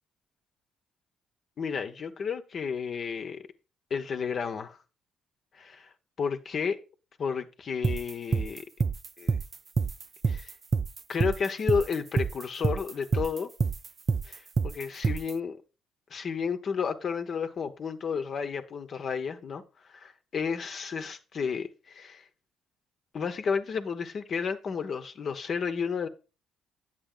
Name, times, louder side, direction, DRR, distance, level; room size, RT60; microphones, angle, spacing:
voice 1, 1.6-3.4 3.9-4.8 5.5-5.9 6.2-6.8 7.2-8.6 9.2-9.4 10.2-10.5 11.1-13.5 14.2-15.6 16.1-19.6 19.9-22.2 23.1-26.1, left 6 dB, 55° left, 1.0 m, -32 dB
sound 1, 7.8-15.3, right 5 dB, 40° right, 0.4 m, -27 dB
9.1 x 8.3 x 3.8 m
hypercardioid pair, 55°, 0 cm